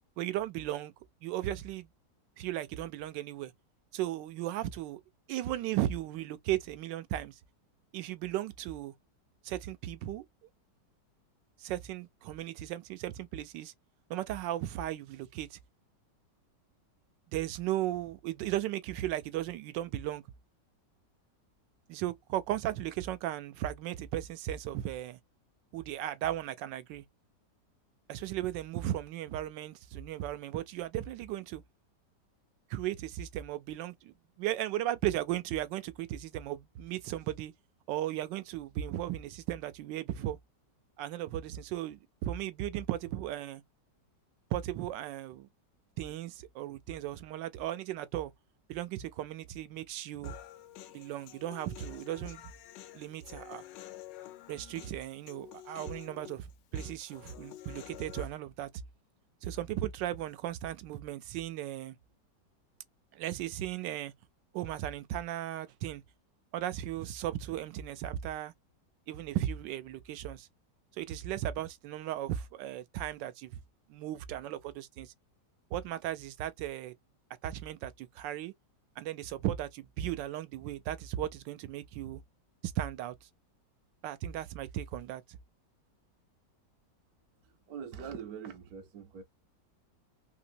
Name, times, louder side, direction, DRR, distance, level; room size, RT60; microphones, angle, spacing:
voice 1, 0.2-0.9 1.2-1.9 2.4-3.5 3.9-5.0 5.3-7.4 7.9-8.9 9.4-10.2 11.6-13.7 14.1-15.6 17.3-20.2 21.9-25.2 25.7-27.0 28.1-31.6 32.7-37.5 37.9-40.4 41.0-43.6 44.5-45.5 46.0-48.3 48.7-50.3 50.9-52.4 52.9-53.6 54.5-58.7 59.4-62.0 63.1-64.1 64.5-66.0 66.5-68.5 69.1-70.5 71.0-73.6 73.9-75.1 75.7-76.9 77.4-78.5 79.0-82.2 82.6-83.2 84.0-85.2, right 13 dB, 90° right, 1.2 m, -36 dB
Human voice, 50.2-58.2, left 13 dB, 85° left, 1.3 m, -49 dB
voice 2, 87.4-89.2, right 7 dB, 65° right, 1.0 m, -43 dB
3.3 x 2.9 x 2.6 m
omnidirectional pair, 1.9 m